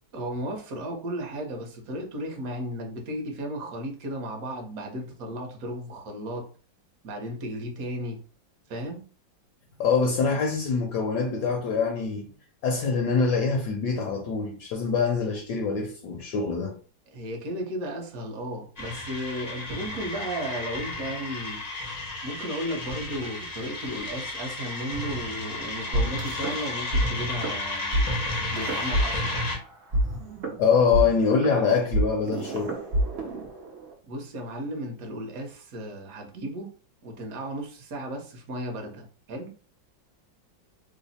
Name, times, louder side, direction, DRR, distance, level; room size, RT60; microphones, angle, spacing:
voice 1, 0.1-6.5 7.0-8.2 8.7-9.0 17.1-21.6 22.2-28.1 28.5-29.5 34.0-36.7 37.0-39.5, equal, 60° right, 1.1 m, -34 dB
voice 2, 9.8-12.3 12.6-16.7 30.6-32.8, left 5 dB, 70° left, 1.1 m, -24 dB
sound 1, 18.8-29.6, left 2 dB, 55° left, 0.4 m, -33 dB
sound 2, 25.9-27.0 27.3-27.5 27.9-28.0 28.6-29.6 29.9-33.9, right 1 dB, 80° right, 0.5 m, -27 dB
3.2 x 2.0 x 4.0 m
omnidirectional pair, 2.1 m